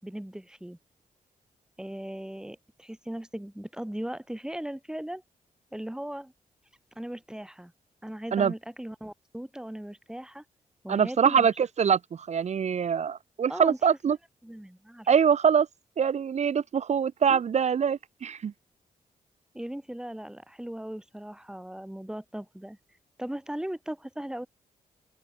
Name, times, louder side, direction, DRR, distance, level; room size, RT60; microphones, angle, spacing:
voice 1, 0.0-0.8 1.8-5.2 5.7-6.3 6.9-7.7 8.0-10.4 10.8-11.5 13.5-13.8 14.4-15.1 17.3-17.4 19.5-22.8 23.2-24.5, right 1 dB, 5° right, 5.1 m, -38 dB
voice 2, 10.9-14.2 15.1-15.7 16.0-18.5, right 7 dB, 55° right, 0.9 m, -24 dB
open air
wide cardioid pair, 125°, 14 cm